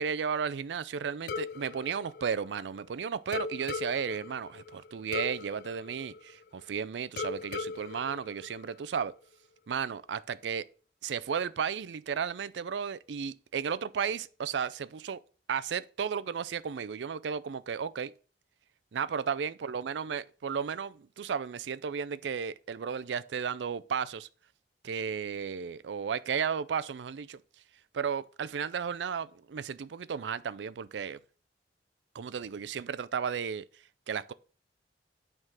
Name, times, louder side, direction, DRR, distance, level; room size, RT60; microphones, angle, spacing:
voice 1, 0.0-9.1 9.7-10.7 11.0-15.2 15.5-18.1 18.9-24.3 24.8-27.4 27.9-31.2 32.1-33.7 34.1-34.3, right 7 dB, 90° right, 0.4 m, -34 dB
sound 1, 1.3-2.9 3.3-6.7 7.2-9.1, left 4 dB, 60° left, 0.4 m, -39 dB
9.0 x 3.7 x 6.1 m
head